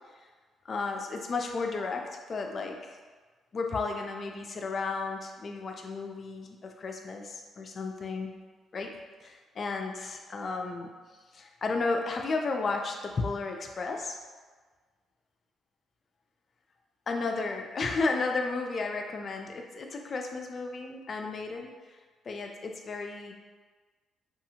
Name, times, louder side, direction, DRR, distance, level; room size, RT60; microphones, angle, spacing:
voice 1, 0.6-2.8 3.5-8.3 8.7-8.9 9.2-10.9 11.3-14.2 17.1-22.0 22.2-23.3, left 3 dB, 45° left, 3 dB, 0.3 m, -33 dB
2.6 x 2.4 x 2.8 m, 1.4 s
cardioid pair, 90°, 0 cm